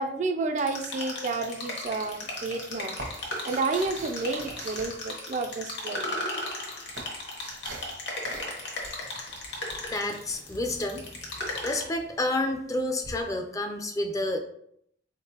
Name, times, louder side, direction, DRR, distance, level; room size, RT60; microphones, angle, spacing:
voice 1, 0.0-3.0 3.4-6.2, right 3 dB, 40° right, 6 dB, 0.4 m, -30 dB
sound 1, 0.6-11.8, left 2 dB, 65° left, 1.2 m, -36 dB
sound 2, 1.8-5.7 6.4-8.0 8.2-8.6 8.8-10.8 13.0-13.1, right 2 dB, 75° right, 1.0 m, -44 dB
voice 2, 9.9-11.1 11.6-14.4, left 1 dB, 20° left, 5 dB, 0.4 m, -29 dB
4.2 x 3.7 x 2.9 m, 0.69 s
head